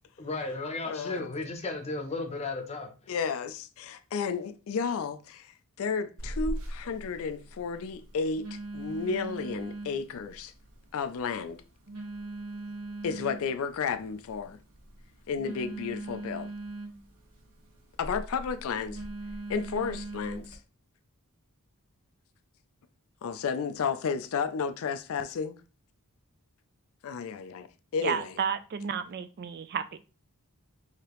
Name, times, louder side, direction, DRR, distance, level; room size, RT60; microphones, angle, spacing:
voice 1, 0.2-2.9, left 3 dB, 30° left, 0.7 m, -34 dB
voice 2, 0.8-1.3 3.1-5.5 5.8-10.5 10.9-11.6 13.0-14.6 15.3-16.5 18.0-19.0 19.5-20.6 23.2-25.6 27.0-27.7 27.9-28.3, left 5 dB, 65° left, 0.4 m, -32 dB
Telephone, 6.2-20.6, right 2 dB, 80° right, 1.4 m, -41 dB
voice 3, 28.0-30.0, right 7 dB, 45° right, 0.3 m, -32 dB
4.8 x 2.8 x 3.0 m
head